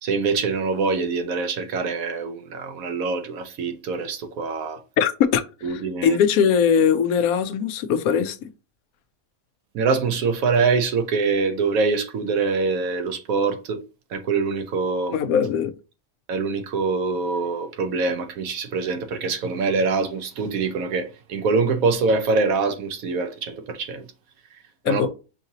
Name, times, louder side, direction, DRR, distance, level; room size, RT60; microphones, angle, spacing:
voice 1, 0.0-4.8 5.6-6.2 9.7-13.8 14.1-15.2 16.3-24.0 24.9-25.1, right 4 dB, 80° right, 1.1 m, -24 dB
voice 2, 5.0-8.5 15.1-15.7 24.8-25.1, left 7 dB, 85° left, 1.0 m, -21 dB
5.6 x 2.7 x 2.8 m
omnidirectional pair, 1.4 m